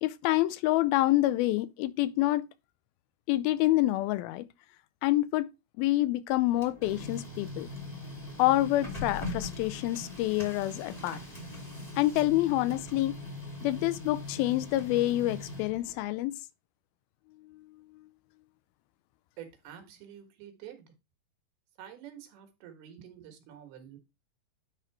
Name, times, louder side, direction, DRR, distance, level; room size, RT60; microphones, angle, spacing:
voice 1, 0.0-2.5 3.3-4.5 5.0-5.5 5.8-7.7 8.4-11.2 12.0-13.2 13.6-16.4, left 16 dB, 80° left, 2.3 m, -27 dB
Printer, 6.3-16.1, left 2 dB, 15° left, 1.8 m, -41 dB
voice 2, 19.4-20.9 21.8-24.0, right 10 dB, 85° right, 3.4 m, -48 dB
10.0 x 3.7 x 4.7 m
omnidirectional pair, 4.4 m